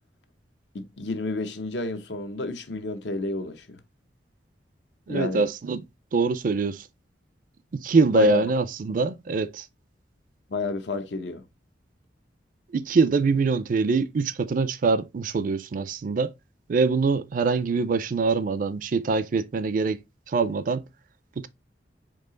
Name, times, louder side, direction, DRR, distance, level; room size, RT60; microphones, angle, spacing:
voice 1, 0.7-3.8 5.1-5.4 8.1-8.4 10.5-11.4, left 3 dB, 80° left, 0.8 m, -31 dB
voice 2, 5.1-5.8 6.1-6.8 7.7-9.6 12.7-16.3 16.7-20.0 20.3-20.8 21.4-21.5, right 4 dB, 50° right, 0.4 m, -24 dB
4.6 x 2.8 x 3.7 m
head